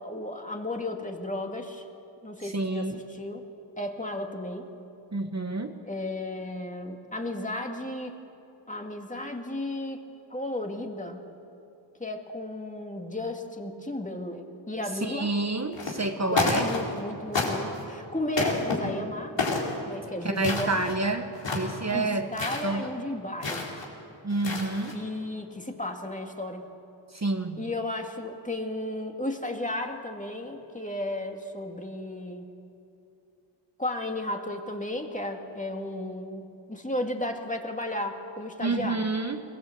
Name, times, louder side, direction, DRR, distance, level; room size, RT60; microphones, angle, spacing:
voice 1, 0.0-1.8 2.2-3.5 3.8-4.7 5.8-8.1 8.7-10.0 10.3-11.2 12.0-15.3 16.2-19.3 19.9-20.8 21.9-23.7 24.9-26.7 27.6-32.4 33.8-39.1, left 1 dB, 15° left, 3 dB, 2.3 m, -34 dB
voice 2, 2.4-3.0 5.1-5.7 15.0-16.7 20.2-22.3 22.6-22.9 24.2-24.9 27.1-27.6 38.6-39.4, right 2 dB, 35° right, 5 dB, 1.4 m, -29 dB
sound 1, 15.7-16.1 16.3-17.0 17.3-17.8 18.3-18.7 19.4-19.7 20.3-21.0 21.3-21.8 22.3-22.6 23.4-23.8 24.3-24.9, left 3 dB, 70° left, 4.2 m, -29 dB
22.5 x 19.0 x 8.0 m, 2.7 s
cardioid pair, 65°, 46 cm